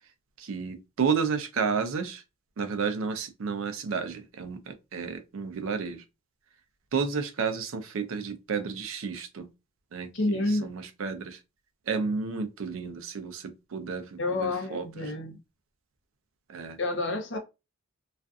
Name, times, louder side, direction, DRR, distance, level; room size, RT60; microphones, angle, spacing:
voice 1, 0.4-2.2 2.6-6.0 6.9-9.5 9.9-11.4 11.9-15.1 16.5-16.8, right 5 dB, 70° right, 0.4 m, -32 dB
voice 2, 10.1-10.7 14.2-15.4 16.8-17.4, left 2 dB, 55° left, 0.6 m, -29 dB
2.4 x 2.4 x 2.3 m
head